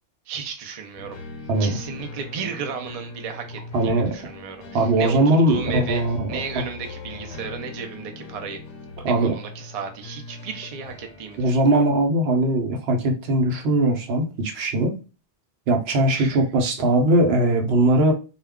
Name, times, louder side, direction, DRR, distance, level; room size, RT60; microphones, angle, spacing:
voice 1, 0.3-1.2 1.6-6.0 6.3-8.6 9.2-11.9 16.1-16.4, right 6 dB, 50° right, 4 dB, 0.4 m, -34 dB
sound 1, 1.0-11.9, left 3 dB, 90° left, 0.9 m, -40 dB
voice 2, 3.7-4.1 4.7-6.6 9.0-9.3 11.4-15.0 15.7-18.1, right 1 dB, 70° right, 3 dB, 0.9 m, -20 dB
2.2 x 2.2 x 3.4 m, 0.32 s
omnidirectional pair, 1.1 m